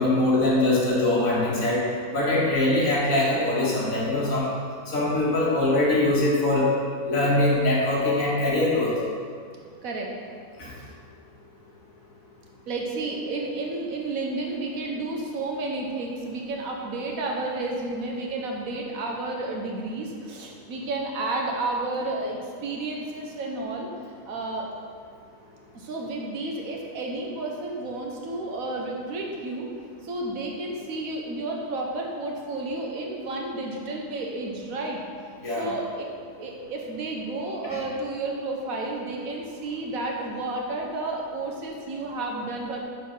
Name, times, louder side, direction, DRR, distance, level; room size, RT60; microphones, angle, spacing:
voice 1, 0.0-4.5 4.9-6.7 7.0-9.0 10.6-10.7 35.4-35.7 37.7-37.8, left 2 dB, 80° left, -6 dB, 2.0 m, -22 dB
voice 2, 12.7-23.9 24.3-24.7 25.7-29.7 30.0-35.0 35.6-36.0 36.4-42.8, right 2 dB, 80° right, 0 dB, 1.4 m, -31 dB
6.4 x 4.3 x 5.4 m, 2.1 s
omnidirectional pair, 1.4 m